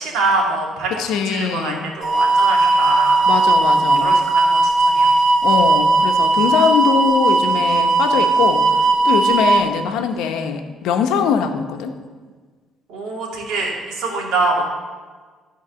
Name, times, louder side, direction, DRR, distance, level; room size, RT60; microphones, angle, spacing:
voice 1, 0.0-1.0 1.3-3.2 3.7-5.1 12.9-14.6, right 3 dB, 80° right, -2 dB, 2.4 m, -24 dB
voice 2, 1.0-1.9 3.3-4.2 5.4-8.6 9.0-11.9, left 7 dB, 85° left, 6 dB, 0.9 m, -21 dB
sound 1, 2.0-9.6, right 3 dB, 45° right, 1.3 m, -16 dB
13.5 x 4.6 x 6.8 m, 1.5 s
cardioid pair, 135°, 0 cm